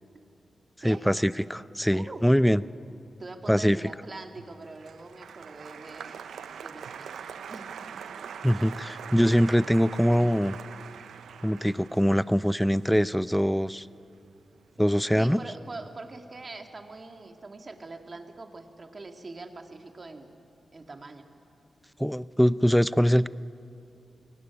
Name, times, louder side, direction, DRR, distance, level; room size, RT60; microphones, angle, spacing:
voice 1, 0.8-2.6 3.5-3.8 8.4-10.6 11.4-13.9 14.8-15.4 22.0-23.3, equal, ahead, 17 dB, 0.5 m, -23 dB
voice 2, 1.9-2.3 3.2-6.2 6.6-7.2 7.5-8.1 15.2-20.3 20.7-21.3, right 3 dB, 45° right, 5 dB, 2.1 m, -43 dB
Applause, 4.2-14.6 14.9-15.5, right 7 dB, 85° right, 0.6 m, -43 dB
22.5 x 17.5 x 9.8 m, 2.7 s
cardioid pair, 55°, 0 cm